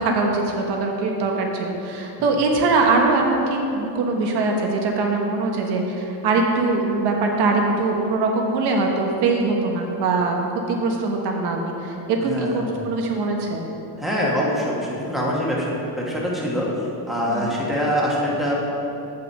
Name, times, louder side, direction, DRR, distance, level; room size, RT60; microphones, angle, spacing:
voice 1, 0.0-10.4 10.7-13.6 17.3-17.5, right 3 dB, 70° right, 1 dB, 1.2 m, -22 dB
voice 2, 12.3-12.6 14.0-16.7 17.1-18.5, equal, ahead, -5 dB, 1.1 m, -24 dB
8.3 x 5.5 x 5.4 m, 3.0 s
cardioid pair, 170°, 42 cm